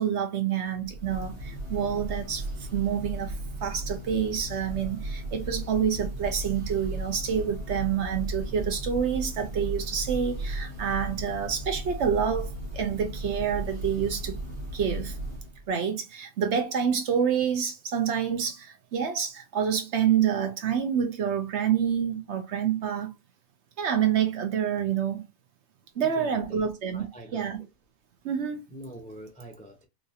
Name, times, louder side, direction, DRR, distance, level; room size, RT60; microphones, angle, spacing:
voice 1, 0.0-2.5 2.7-14.4 14.7-15.1 15.7-23.1 23.8-25.2 26.0-27.1 27.3-27.6 28.2-28.6, right 8 dB, 65° right, 0.9 m, -28 dB
Church bell, 0.7-15.7, right 1 dB, 25° right, 1.2 m, -35 dB
voice 2, 25.9-27.5 28.7-29.9, right 1 dB, 10° left, 0.3 m, -45 dB
4.0 x 2.5 x 2.8 m
omnidirectional pair, 1.4 m